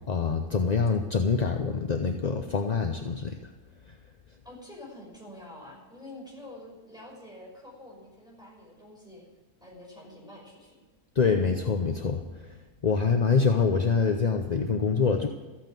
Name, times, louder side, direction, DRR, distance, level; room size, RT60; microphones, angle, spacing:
voice 1, 0.1-3.4 11.2-12.2 12.8-15.3, left 5 dB, 40° left, 5 dB, 0.6 m, -25 dB
voice 2, 4.4-9.3 9.6-10.7, left 1 dB, 5° right, -4 dB, 5.9 m, -47 dB
14.0 x 8.8 x 9.1 m, 1.2 s
omnidirectional pair, 1.6 m